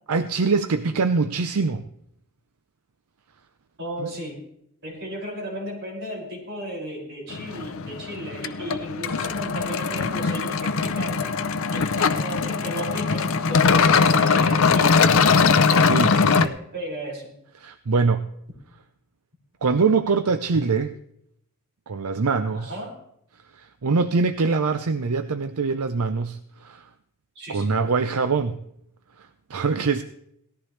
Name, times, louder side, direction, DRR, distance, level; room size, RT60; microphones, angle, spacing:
voice 1, 0.1-1.8 4.0-4.1 15.8-16.6 17.6-18.3 19.6-20.9 21.9-22.7 23.5-26.8 27.5-28.6 29.2-30.0, right 4 dB, 80° right, 9 dB, 0.6 m, -23 dB
voice 2, 3.8-4.4 4.8-11.3 11.7-17.3 22.5-23.0 27.4-27.7, equal, 50° right, -3 dB, 5.9 m, -35 dB
sound 1, 7.3-16.5, left 5 dB, 60° left, 0.7 m, -21 dB
18.5 x 14.0 x 3.3 m, 0.74 s
head